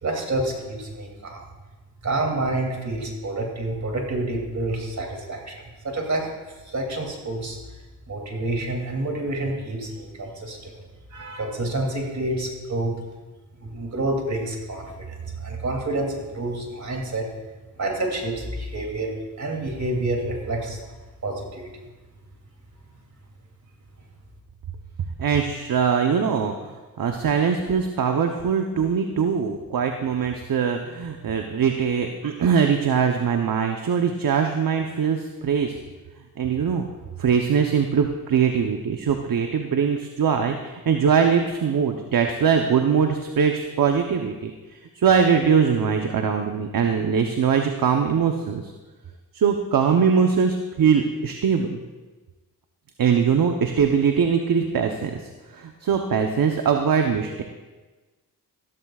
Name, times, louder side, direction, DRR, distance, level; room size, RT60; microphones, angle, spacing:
voice 1, 0.0-1.4 2.0-6.3 6.6-7.6 8.1-10.7 11.1-12.9 13.6-17.3 17.8-20.8 21.2-21.7, right 2 dB, 50° right, 1 dB, 2.9 m, -28 dB
voice 2, 25.2-35.8 36.4-36.9 37.2-48.7 49.3-51.8 53.0-55.2 55.5-57.4, right 6 dB, 65° right, 4 dB, 0.9 m, -22 dB
14.5 x 13.5 x 2.4 m, 1.2 s
cardioid pair, 70°, 37 cm